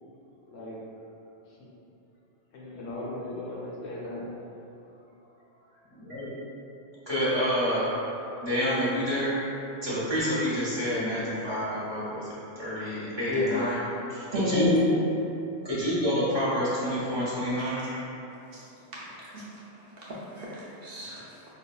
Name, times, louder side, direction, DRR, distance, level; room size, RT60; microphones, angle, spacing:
voice 1, 2.5-4.3 5.5-5.6 13.3-13.7, left 2 dB, 70° left, -6 dB, 1.0 m, -33 dB
voice 2, 5.9-6.3 7.1-7.9 8.4-9.3 9.8-13.8 14.1-14.9 15.6-17.8, equal, 25° right, -11 dB, 1.0 m, -28 dB
voice 3, 14.3-14.7 17.5-18.1 18.5-18.6 19.3-19.4 20.0-21.3, left 2 dB, 60° right, -7 dB, 0.7 m, -32 dB
5.0 x 2.1 x 2.2 m, 2.9 s
omnidirectional pair, 1.2 m